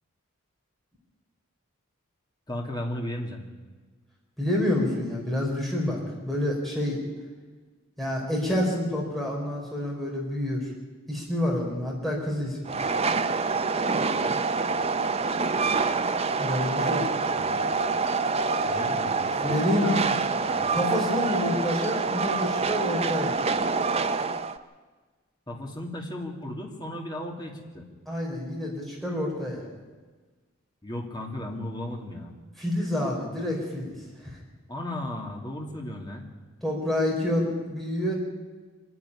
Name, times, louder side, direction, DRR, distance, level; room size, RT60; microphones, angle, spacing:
voice 1, 2.5-3.4 17.3-17.7 18.6-20.2 20.5-20.7 25.5-27.9 30.8-32.3 34.7-36.3, left 1 dB, 20° left, 0 dB, 2.4 m, -35 dB
voice 2, 4.4-7.0 8.0-10.7 11.1-12.8 16.4-17.0 19.4-20.0 20.7-23.4 28.1-29.6 32.6-33.9 34.2-34.4 36.6-38.1, left 1 dB, ahead, -3 dB, 4.2 m, -28 dB
Train, 12.7-24.6, right 4 dB, 30° right, 0.7 m, -26 dB
25.0 x 11.0 x 9.9 m, 1.4 s
head